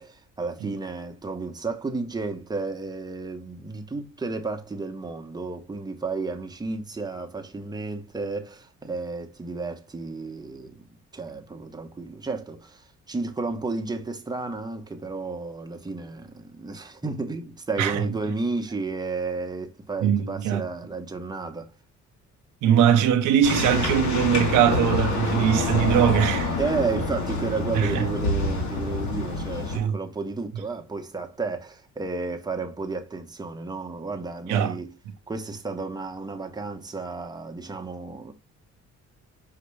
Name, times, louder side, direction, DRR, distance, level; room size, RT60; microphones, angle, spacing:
voice 1, 0.0-10.8 11.1-21.7 26.6-34.9 35.3-38.3, right 3 dB, 15° right, 0.9 m, -32 dB
voice 2, 20.0-20.6 22.6-26.5 27.7-28.1 29.7-30.0 34.5-34.8, right 9 dB, 85° right, 0.8 m, -21 dB
sound 1, 23.4-29.8, left 2 dB, 70° left, 1.5 m, -27 dB
5.1 x 2.9 x 3.3 m
cardioid pair, 90°, 30 cm